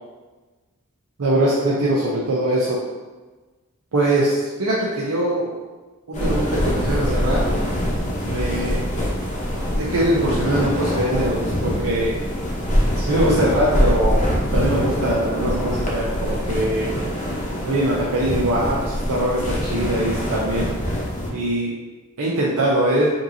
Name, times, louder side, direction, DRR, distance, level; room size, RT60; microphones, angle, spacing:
voice 1, 1.2-2.8 3.9-5.6 6.1-7.4 8.2-8.8 9.8-12.1 13.0-14.3 14.5-16.9 17.6-20.7 21.3-21.7 22.2-23.1, right 1 dB, 80° right, -5 dB, 0.6 m, -22 dB
sound 1, 6.1-21.3, equal, 35° left, 0.8 m, -24 dB
5.2 x 2.7 x 2.6 m, 1.3 s
head